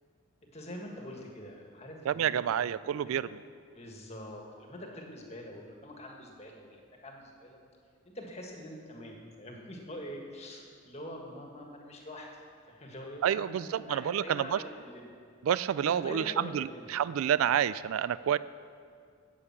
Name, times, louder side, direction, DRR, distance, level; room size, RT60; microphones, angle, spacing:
voice 1, 0.4-2.7 3.0-3.2 3.7-7.6 8.0-12.3 12.7-15.1 15.8-16.9, left 1 dB, 30° left, 1 dB, 1.6 m, -45 dB
voice 2, 2.1-3.3 13.2-14.6 15.5-18.4, right 9 dB, 85° right, 17 dB, 0.3 m, -29 dB
9.9 x 8.5 x 7.4 m, 2.2 s
head